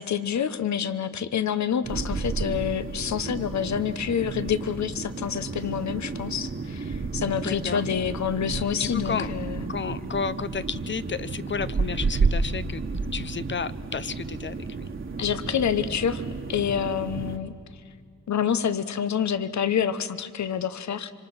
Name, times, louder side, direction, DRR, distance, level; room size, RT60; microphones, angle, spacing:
voice 1, 0.0-9.6 15.2-16.2 16.5-17.5 18.3-21.1, left 8 dB, 60° left, 13 dB, 1.1 m, -27 dB
sound 1, 1.8-17.4, right 4 dB, 40° right, 1.6 m, -31 dB
voice 2, 7.4-7.8 8.8-9.4 9.7-12.8 13.1-14.9, left 6 dB, 35° left, 15 dB, 0.7 m, -32 dB
26.0 x 25.5 x 6.1 m, 2.4 s
wide cardioid pair, 120°, 31 cm